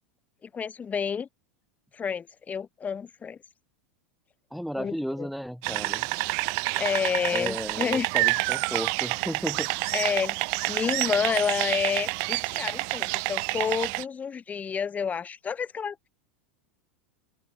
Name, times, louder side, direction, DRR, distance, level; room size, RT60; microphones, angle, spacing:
voice 1, 0.4-1.3 1.9-3.4 4.7-5.3 6.7-8.1 9.9-10.3 10.7-16.1, left 6 dB, 25° left, 3.4 m, -29 dB
voice 2, 4.5-6.1 7.3-9.7, equal, ahead, 1.2 m, -34 dB
sound 1, 5.6-14.0, right 40 dB or more, 50° right, 0.6 m, -28 dB
open air
hypercardioid pair, 90°, 7 cm